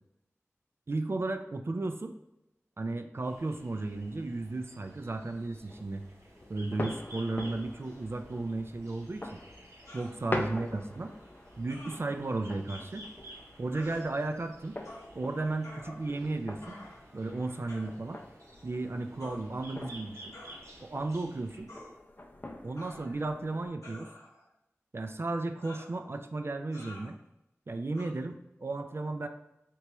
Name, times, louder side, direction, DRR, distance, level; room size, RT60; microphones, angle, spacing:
voice 1, 0.9-2.1 2.8-6.0 6.5-9.4 9.9-11.1 11.6-13.1 13.6-14.8 15.1-16.8 17.1-18.2 18.6-20.3 20.8-21.7 22.6-24.1 24.9-27.2 27.7-29.3, right 2 dB, 50° right, 6 dB, 0.3 m, -34 dB
sound 1, 3.2-21.6, right 1 dB, 70° right, 0.7 m, -54 dB
sound 2, 5.4-23.7, left 1 dB, 35° left, 0.5 m, -44 dB
sound 3, 9.9-10.1 11.7-12.0 12.7-12.8 13.7-14.0 14.8-15.1 15.6-16.3 16.6-17.1 17.7-17.9 19.2-19.4 20.3-20.6 21.7-21.9 22.8-23.3 23.8-24.4 25.6-25.9 26.7-27.1 27.9-28.1, left 1 dB, 90° left, 1.1 m, -49 dB
3.4 x 2.9 x 3.0 m, 0.87 s
wide cardioid pair, 40°, 5 cm